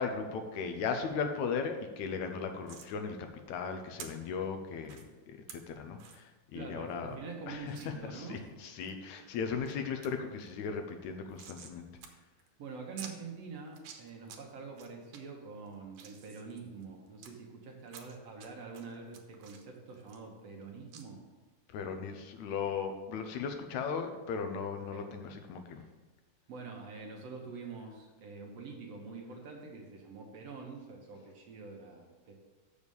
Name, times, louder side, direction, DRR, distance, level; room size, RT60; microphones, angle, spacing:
voice 1, 0.0-3.2 3.5-7.2 7.5-11.9 21.7-25.9, left 5 dB, 75° left, 6 dB, 2.0 m, -37 dB
sound 1, 2.7-2.9 4.0-4.1 4.9-5.0 5.5-5.6 6.0-6.2 6.6-6.7 6.9-7.0 7.8-7.9 8.4-8.9 9.4-9.7 10.0-10.1 10.4-11.8 12.0-12.1 12.4-12.5 13.0-13.1 13.7-14.4 14.8-15.2 15.7-17.3 17.9-18.5 18.7-20.6 20.9-21.0, right 8 dB, 90° right, 2.5 m, -50 dB
voice 2, 6.5-8.4 12.6-21.2 24.8-25.1 26.5-32.3, right 4 dB, 60° right, 1 dB, 2.1 m, -45 dB
7.0 x 6.4 x 7.0 m, 1.2 s
omnidirectional pair, 3.5 m